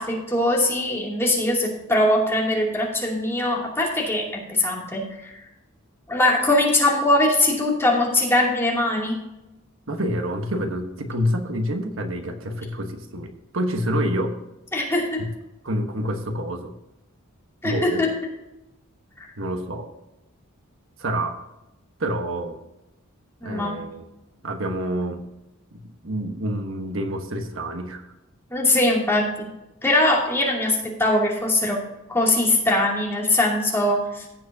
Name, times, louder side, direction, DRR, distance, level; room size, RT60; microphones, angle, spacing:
voice 1, 0.0-5.3 6.1-9.2 14.7-15.2 17.6-18.1 19.2-19.3 23.4-23.7 28.5-29.5 29.8-31.8 32.1-34.3, left 1 dB, 10° left, -3 dB, 2.6 m, -21 dB
voice 2, 9.9-14.4 15.2-15.3 15.6-16.7 17.6-18.0 19.4-19.9 21.0-21.4 22.0-22.6 23.4-24.0 24.4-25.2 25.7-28.0, equal, 65° right, 5 dB, 1.2 m, -27 dB
16.5 x 7.6 x 2.8 m, 0.94 s
head